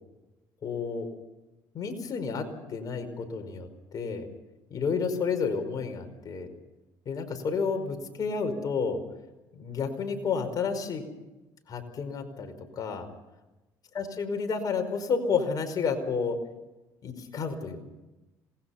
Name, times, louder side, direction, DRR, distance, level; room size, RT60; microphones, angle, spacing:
voice 1, 0.6-1.1 1.7-4.3 4.7-6.5 7.0-9.0 9.5-11.0 11.7-13.1 13.9-16.4 17.0-17.8, left 5 dB, 50° left, 6 dB, 5.2 m, -31 dB
27.0 x 20.5 x 5.8 m, 1.0 s
supercardioid pair, 75°, 8 cm